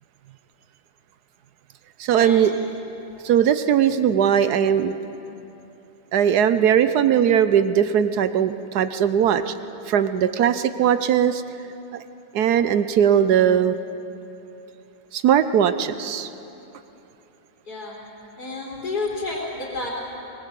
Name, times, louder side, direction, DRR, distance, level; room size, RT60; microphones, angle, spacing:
voice 1, 2.0-2.6 3.2-5.0 6.1-9.5 9.9-11.4 11.9-12.0 12.3-13.8 15.1-16.3, right 9 dB, 65° right, 12 dB, 1.2 m, -19 dB
voice 2, 17.7-18.0 18.3-19.9, left 3 dB, 55° left, -4 dB, 3.8 m, -30 dB
24.0 x 19.0 x 8.3 m, 3.0 s
omnidirectional pair, 2.1 m